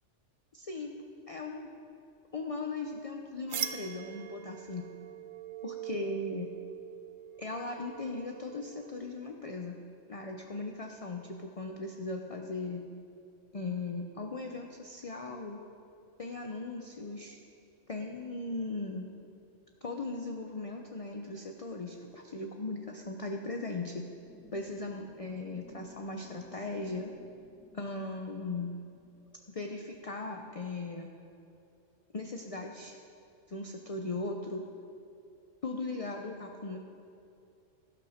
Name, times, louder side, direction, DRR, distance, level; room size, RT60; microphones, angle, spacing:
voice 1, 0.5-0.9 1.3-1.7 2.3-4.9 5.6-6.5 7.4-9.8 10.1-12.8 13.5-15.6 16.2-17.4 17.9-19.1 19.8-24.1 24.5-27.1 27.7-28.7 29.5-31.1 32.1-33.0 33.5-34.6 35.6-36.8, left 3 dB, 35° left, 3 dB, 0.7 m, -38 dB
sound 1, 3.5-9.1, right 10 dB, 80° right, 1.1 m, -42 dB
sound 2, 24.2-29.2, left 1 dB, 5° left, 2.2 m, -58 dB
12.5 x 12.0 x 5.1 m, 2.6 s
omnidirectional pair, 1.3 m